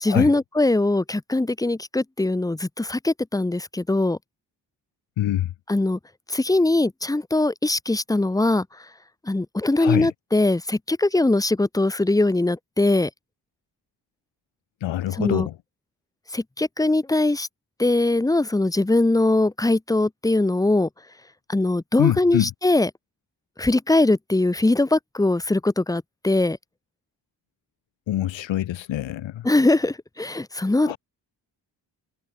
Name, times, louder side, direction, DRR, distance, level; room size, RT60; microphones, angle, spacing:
voice 1, 0.0-4.2 5.7-6.0 6.3-8.7 9.3-13.1 15.2-15.5 16.3-17.5 17.8-20.9 21.5-22.9 23.6-26.6 29.4-31.0, left 2 dB, 10° left, 0.7 m, -21 dB
voice 2, 5.2-5.5 9.8-10.1 14.8-15.6 22.0-22.5 28.1-29.5 30.8-31.0, left 13 dB, 85° left, 1.0 m, -24 dB
cardioid pair, 65°, 44 cm